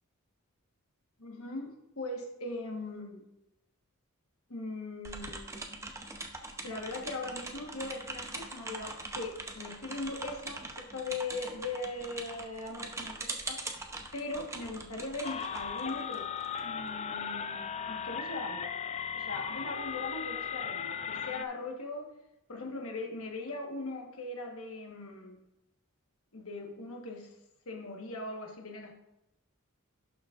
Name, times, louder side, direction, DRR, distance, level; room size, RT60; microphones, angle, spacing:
voice 1, 1.2-3.3 4.5-5.7 6.6-13.6 14.1-16.3 16.6-18.7 19.1-22.1 22.5-25.4 26.3-27.3 27.7-28.9, left 2 dB, 70° left, 2 dB, 1.4 m, -40 dB
sound 1, 5.0-16.6, right 2 dB, 15° right, 0.7 m, -42 dB
sound 2, 15.2-21.4, left 7 dB, 30° left, 0.3 m, -37 dB
11.5 x 6.2 x 2.5 m, 0.87 s
head